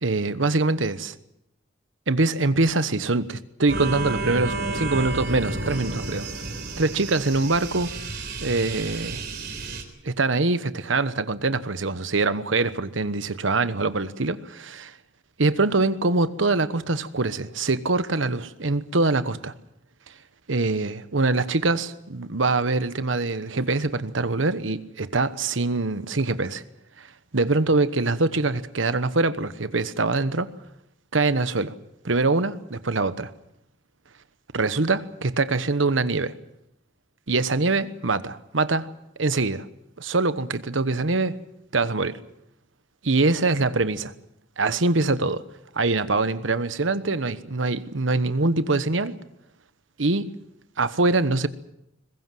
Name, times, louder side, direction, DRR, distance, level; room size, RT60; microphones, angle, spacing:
voice 1, 0.0-1.1 2.1-6.3 6.8-7.9 8.4-9.2 10.0-15.0 15.4-19.5 20.5-26.6 27.0-30.5 31.1-31.7 32.0-33.3 34.5-36.4 37.3-38.9 39.2-39.7 40.0-41.4 41.7-42.2 43.0-44.1 44.6-45.4 45.7-49.2 50.0-50.3 50.8-51.5, right 3 dB, 75° right, 1.2 m, -24 dB
sound 1, 3.7-9.8, right 2 dB, 55° right, 3.9 m, -31 dB
22.0 x 21.0 x 7.7 m
head